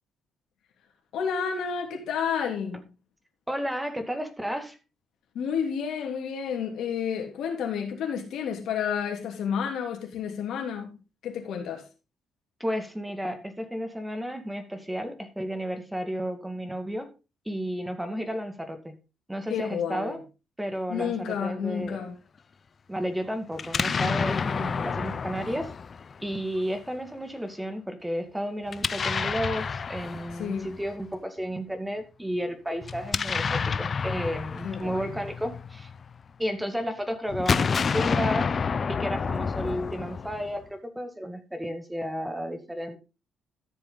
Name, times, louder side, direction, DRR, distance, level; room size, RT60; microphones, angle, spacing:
voice 1, 1.1-2.8 5.3-11.0 11.2-11.8 19.5-20.2 20.9-22.1 30.4-30.7 34.6-35.1, left 7 dB, 80° left, 3.0 m, -30 dB
voice 2, 3.5-4.8 12.6-17.1 17.5-19.0 19.3-20.2 20.6-22.0 22.9-25.7 26.2-35.9 36.4-38.5 38.9-43.0, equal, 5° right, 2.1 m, -32 dB
Explosion, 23.6-26.6 28.7-30.9 32.8-36.2 37.3-40.7, left 5 dB, 45° left, 0.6 m, -29 dB
13.5 x 7.1 x 3.9 m
cardioid pair, 90°, 0 cm